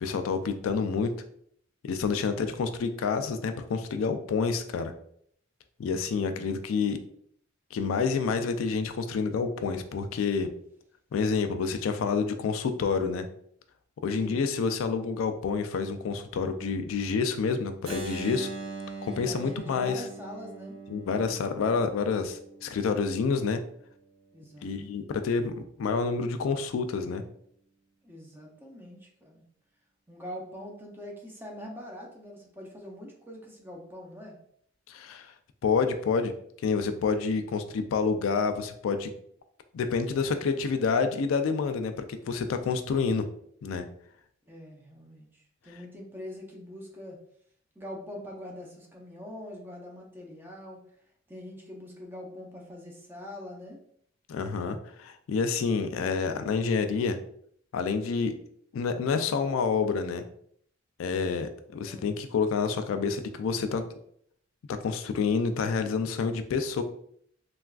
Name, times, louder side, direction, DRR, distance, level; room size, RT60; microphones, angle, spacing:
voice 1, 0.0-1.1 1.8-4.9 5.8-7.0 7.7-10.5 11.1-13.3 14.0-18.5 19.0-20.0 20.9-23.6 24.6-27.2 34.9-35.3 35.6-36.3 36.6-39.1 39.7-43.2 43.6-43.8 54.3-57.2 57.7-58.3 58.7-60.2 61.0-63.8 64.7-66.8, left 5 dB, 80° left, 8 dB, 0.3 m, -28 dB
voice 2, 14.1-14.5 19.2-20.8 24.3-24.7 28.0-29.4 30.1-34.4 44.5-47.2 47.8-50.8 51.3-53.8 61.8-62.1, left 1 dB, 10° right, -1 dB, 0.5 m, -43 dB
Keyboard (musical), 17.9-23.7, right 3 dB, 70° right, 0.8 m, -41 dB
3.4 x 2.3 x 2.3 m, 0.66 s
head